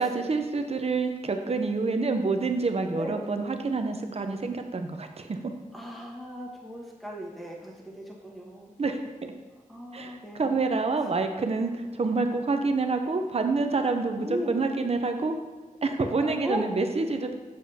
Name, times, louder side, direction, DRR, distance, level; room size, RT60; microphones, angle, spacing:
voice 1, 0.0-5.4 8.8-9.3 9.9-15.4 15.8-17.3, right 3 dB, 50° right, 6 dB, 0.7 m, -27 dB
voice 2, 5.7-8.7 9.7-10.7 14.1-14.6 16.0-16.6, equal, ahead, -2 dB, 1.4 m, -37 dB
7.5 x 7.3 x 2.8 m, 1.3 s
wide cardioid pair, 95°, 14 cm